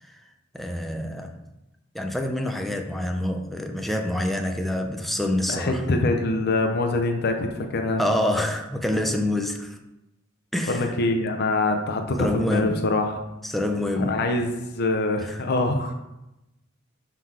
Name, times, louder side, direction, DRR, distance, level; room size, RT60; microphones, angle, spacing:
voice 1, 0.5-1.3 1.9-5.8 8.0-9.8 10.5-10.9 12.2-12.8 13.4-14.2 15.3-15.4, left 1 dB, ahead, 3 dB, 0.4 m, -26 dB
voice 2, 5.5-8.0 10.7-13.2 14.0-15.9, left 2 dB, 50° left, 4 dB, 0.6 m, -24 dB
5.7 x 3.9 x 4.7 m, 0.94 s
head